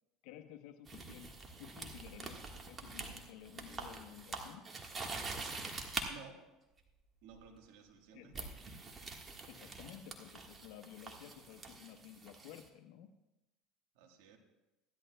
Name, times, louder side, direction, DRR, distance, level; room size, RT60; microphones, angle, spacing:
voice 1, 0.2-1.3 1.6-4.6 8.1-8.5 9.5-13.1, left 11 dB, 70° left, 7 dB, 0.9 m, -53 dB
sound 1, 0.9-6.1 7.3-7.6 8.3-12.7, right 3 dB, 30° right, 1.5 m, -45 dB
voice 2, 6.1-6.4 7.2-8.3 13.9-14.4, right 6 dB, 75° right, 3 dB, 1.4 m, -55 dB
15.5 x 11.0 x 2.3 m, 1.0 s
supercardioid pair, 90°, 0 cm